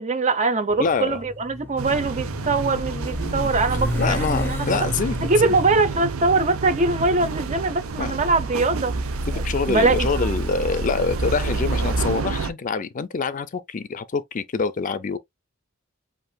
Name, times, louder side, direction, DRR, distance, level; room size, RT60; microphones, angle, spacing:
voice 1, 0.0-4.9 5.2-8.9 9.3-10.1, right 3 dB, 35° right, 0.7 m, -22 dB
Motorcycle, 0.7-8.9, left 1 dB, 10° left, 0.8 m, -33 dB
voice 2, 0.8-1.2 4.0-5.1 5.4-5.5 8.0-8.1 9.3-15.2, left 4 dB, 40° left, 0.4 m, -25 dB
sound 1, 1.8-12.5, right 3 dB, 90° right, 0.6 m, -28 dB
7.7 x 2.6 x 2.3 m
head